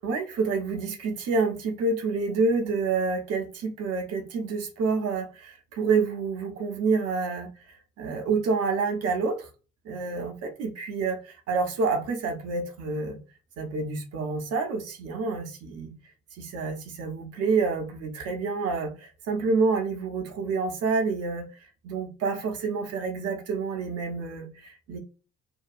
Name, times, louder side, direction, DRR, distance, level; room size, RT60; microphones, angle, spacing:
voice 1, 0.0-9.5 9.8-13.2 13.6-15.9 16.4-21.5 21.8-25.0, right 4 dB, 50° right, 0.8 m, -28 dB
2.6 x 2.2 x 2.5 m
figure-of-eight pair, 50°, 31 cm